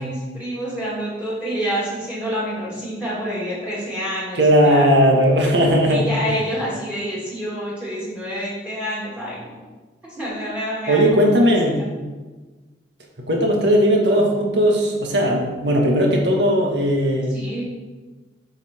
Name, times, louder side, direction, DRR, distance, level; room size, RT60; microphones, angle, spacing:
voice 1, 0.0-4.9 5.9-9.6 10.1-11.5 11.8-11.9 17.3-17.6, equal, 5° right, -7 dB, 2.6 m, -28 dB
voice 2, 4.4-6.0 10.9-11.8 13.3-17.3, equal, 80° right, 0 dB, 1.6 m, -17 dB
8.1 x 5.8 x 4.4 m, 1.2 s
head